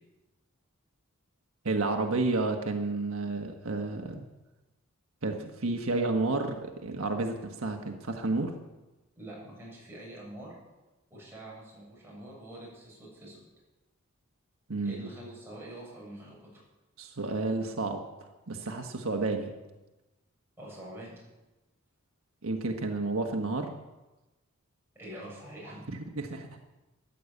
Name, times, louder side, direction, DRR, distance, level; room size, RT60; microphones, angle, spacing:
voice 1, 1.6-4.2 5.2-8.5 14.7-15.0 17.0-18.0 18.5-19.5 22.4-23.7 25.9-26.5, right 3 dB, 75° right, 3 dB, 1.4 m, -31 dB
voice 2, 9.2-10.5 11.1-13.4 14.8-16.6 20.6-21.2 24.9-25.9, right 1 dB, 10° right, -5 dB, 7.4 m, -45 dB
14.0 x 11.0 x 8.4 m, 1.1 s
head